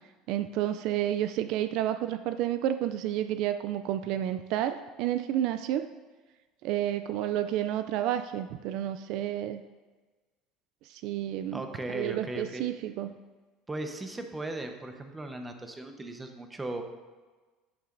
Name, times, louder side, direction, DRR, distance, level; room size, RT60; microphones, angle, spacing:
voice 1, 0.3-5.9 6.6-9.6 10.9-11.6 11.9-13.1, right 12 dB, 65° right, 10 dB, 0.3 m, -30 dB
voice 2, 11.5-12.7 13.7-16.8, right 2 dB, 15° right, 5 dB, 0.9 m, -37 dB
8.8 x 8.6 x 2.6 m, 1.3 s
supercardioid pair, 100°, 0 cm